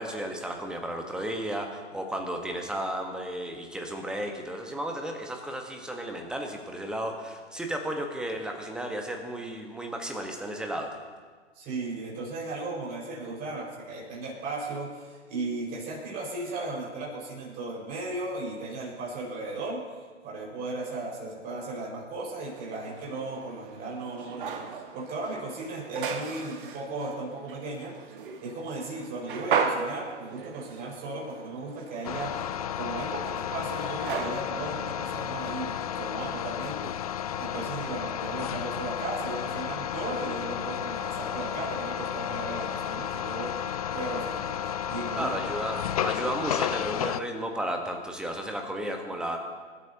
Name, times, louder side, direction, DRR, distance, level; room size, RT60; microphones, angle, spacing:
voice 1, 0.0-10.9 45.1-49.4, right 1 dB, ahead, 3 dB, 1.2 m, -33 dB
voice 2, 11.5-19.8 20.2-27.9 28.4-36.9 37.4-43.6 43.9-44.5 44.9-45.3, right 2 dB, 25° right, -4 dB, 5.2 m, -36 dB
sound 1, 22.4-36.2, right 6 dB, 45° right, 1.5 m, -37 dB
sound 2, 32.0-47.2, left 9 dB, 35° left, 0.4 m, -32 dB
27.0 x 12.5 x 2.8 m, 1.5 s
figure-of-eight pair, 125°, 36 cm